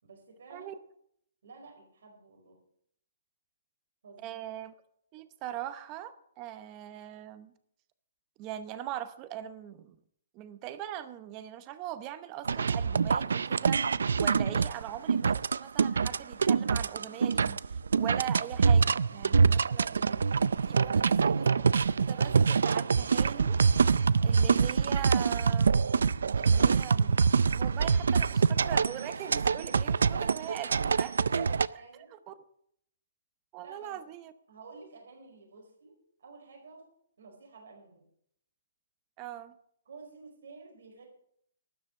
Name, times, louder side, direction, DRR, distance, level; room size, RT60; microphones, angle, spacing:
voice 1, 0.0-0.7 1.4-2.6 4.0-4.4 29.7-30.4 31.6-32.1 33.6-34.1 34.5-36.9 37.2-38.0 39.8-41.1, right 4 dB, 70° right, 4.9 m, -51 dB
voice 2, 4.2-4.7 5.1-7.5 8.4-10.0 10.3-13.9 14.2-20.2 20.7-23.6 24.2-25.8 26.4-27.2 27.5-31.6 31.9-32.3 33.5-34.3 39.2-39.5, right 12 dB, 25° right, 0.8 m, -41 dB
sound 1, 12.4-31.7, right 5 dB, 85° right, 0.4 m, -25 dB
12.5 x 10.0 x 6.5 m
hypercardioid pair, 165°, 0 cm